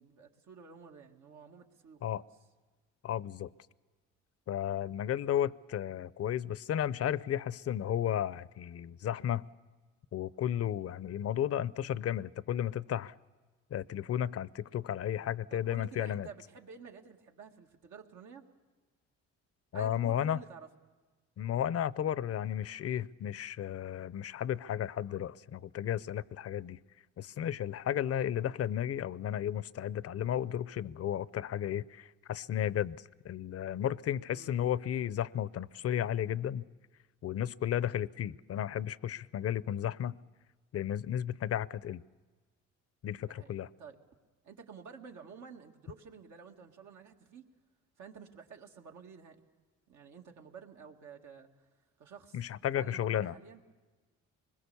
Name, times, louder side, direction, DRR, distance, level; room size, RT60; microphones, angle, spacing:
voice 1, 0.0-2.2 5.1-5.2 15.5-18.4 19.7-20.7 34.3-34.5 43.3-44.0 44.4-47.5 48.0-49.4 49.9-51.5 52.0-53.6, right 6 dB, 75° right, 2 dB, 2.1 m, -51 dB
voice 2, 3.0-3.5 4.5-9.5 10.1-13.1 13.7-16.3 19.7-20.4 21.4-26.8 27.2-36.6 37.2-40.1 40.7-42.0 43.0-43.7 52.3-53.3, left 10 dB, 50° left, 19 dB, 0.6 m, -33 dB
24.5 x 21.0 x 7.0 m, 1.3 s
cardioid pair, 90°, 30 cm